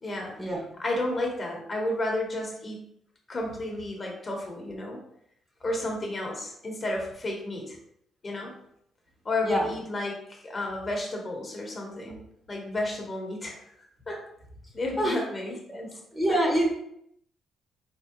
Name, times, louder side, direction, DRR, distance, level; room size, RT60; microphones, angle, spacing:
voice 1, 0.0-0.3 0.8-2.8 3.3-5.0 5.6-7.8 8.2-8.5 9.2-12.2 12.5-13.6 14.1-14.2 14.7-15.9 16.3-16.4, left 1 dB, 30° left, -1 dB, 1.2 m, -32 dB
voice 2, 16.1-16.7, right 1 dB, 10° right, -1 dB, 1.3 m, -24 dB
4.2 x 3.6 x 2.9 m, 0.72 s
cardioid pair, 90°, 0 cm